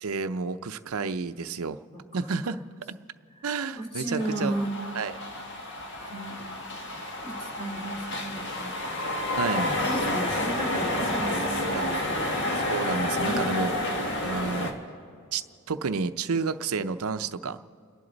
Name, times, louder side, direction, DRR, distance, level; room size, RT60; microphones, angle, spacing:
voice 1, 0.0-1.8 2.1-2.6 3.4-4.5 4.9-5.2 9.4-9.7 11.7-11.8 12.6-13.7 14.2-14.7 15.3-15.4 15.7-17.6, right 4 dB, 80° right, 11 dB, 0.6 m, -30 dB
voice 2, 3.8-4.7 6.1-6.4 7.2-8.7 9.6-12.6, right 1 dB, 25° left, 1 dB, 2.5 m, -34 dB
sound 1, 4.2-14.7, left 1 dB, 55° left, 1.7 m, -30 dB
29.5 x 11.0 x 4.0 m, 2.4 s
head